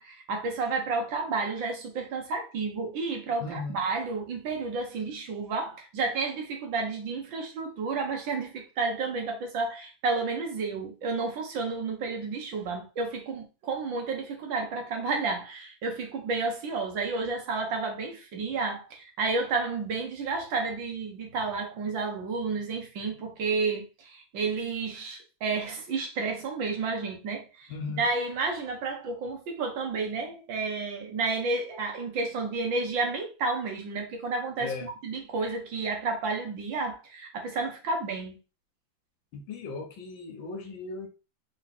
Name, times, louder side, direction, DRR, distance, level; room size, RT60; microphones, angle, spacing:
voice 1, 0.0-38.4, right 4 dB, 75° right, 1.9 m, -31 dB
voice 2, 3.4-3.8 27.7-28.1 34.6-34.9 39.3-41.1, left 4 dB, 75° left, 1.7 m, -37 dB
4.4 x 2.9 x 4.1 m
omnidirectional pair, 2.1 m